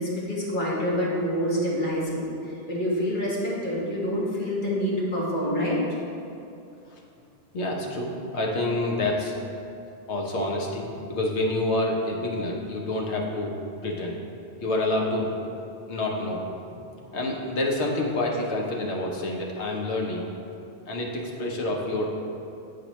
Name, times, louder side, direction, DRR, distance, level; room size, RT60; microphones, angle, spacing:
voice 1, 0.0-5.8, equal, 45° left, -7 dB, 1.5 m, -27 dB
voice 2, 7.5-9.4 10.1-13.5 13.8-14.2 14.6-15.3 15.9-16.4 17.1-20.2 20.9-22.1, left 2 dB, 80° left, 0 dB, 1.1 m, -27 dB
8.8 x 4.9 x 3.0 m, 2.7 s
omnidirectional pair, 1.1 m